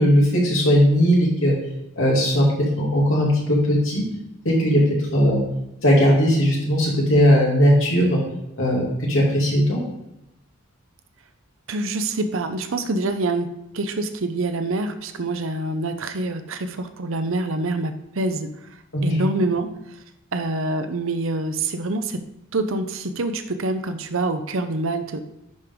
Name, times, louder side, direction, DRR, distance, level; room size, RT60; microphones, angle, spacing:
voice 1, 0.0-1.5 2.0-2.5 2.8-4.0 4.4-4.8 5.1-5.4 5.8-8.2 8.6-9.8 18.9-19.2, equal, 60° left, -3 dB, 2.7 m, -18 dB
voice 2, 11.7-18.5 19.0-19.7 20.3-22.2 22.5-25.2, right 2 dB, 65° right, 9 dB, 0.7 m, -26 dB
10.5 x 5.1 x 3.7 m, 0.85 s
head